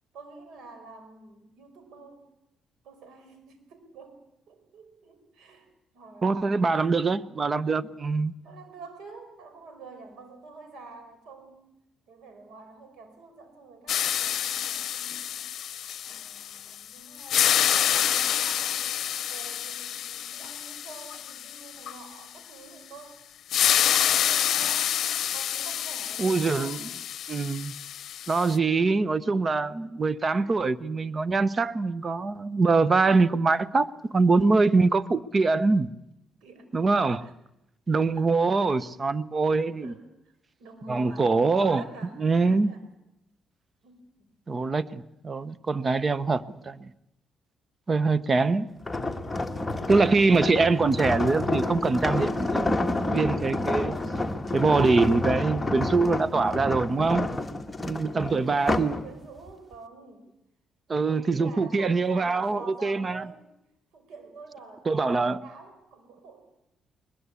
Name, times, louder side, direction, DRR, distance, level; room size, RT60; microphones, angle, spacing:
voice 1, 0.1-2.2 2.8-4.2 4.5-5.7 5.9-7.1 8.4-11.7 12.1-15.4 16.0-18.8 19.2-23.3 23.9-26.8 36.4-36.7 37.2-37.3 38.1-38.8 39.8-40.3 40.6-41.3 41.5-42.8 43.8-44.3 58.4-60.3 61.1-63.4 63.9-66.4, right 3 dB, 80° right, 5.0 m, -47 dB
voice 2, 6.2-8.3 26.2-26.8 27.3-27.7 28.3-35.9 36.7-37.3 37.9-39.9 40.9-41.8 42.2-42.7 44.5-46.9 47.9-48.7 49.9-52.7 53.1-54.0 54.5-57.3 57.8-59.0 60.9-63.2 64.9-65.4, right 3 dB, 35° right, 0.9 m, -24 dB
sound 1, 13.9-16.8 17.1-22.0 23.5-28.6, left 10 dB, 70° left, 0.7 m, -27 dB
sound 2, 48.8-59.0 59.5-59.7, left 2 dB, 10° left, 1.6 m, -29 dB
21.0 x 21.0 x 8.4 m
cardioid pair, 90°, 0 cm